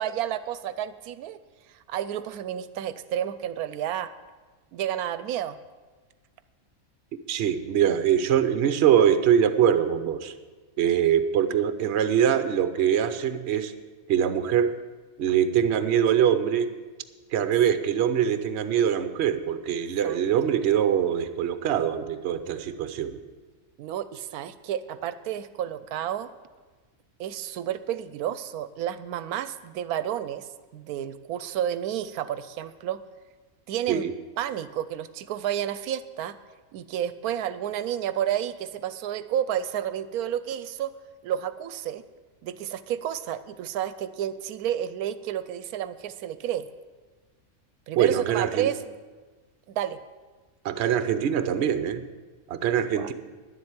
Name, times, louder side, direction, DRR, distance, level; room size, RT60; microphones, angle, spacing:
voice 1, 0.0-1.4 1.9-4.1 4.7-5.6 20.0-20.2 23.8-26.3 27.2-33.0 33.7-34.0 34.4-36.4 36.7-40.9 41.2-42.0 42.4-46.7 47.9-48.8 49.7-50.0 52.9-53.1, right 10 dB, 80° right, 13 dB, 1.1 m, -31 dB
voice 2, 7.3-10.3 10.8-13.7 14.1-14.7 15.2-16.7 17.3-23.2 33.9-34.1 47.9-48.7 50.6-52.0 52.5-53.1, right 9 dB, 55° right, 10 dB, 0.9 m, -23 dB
10.5 x 7.6 x 8.7 m, 1.4 s
omnidirectional pair, 1.5 m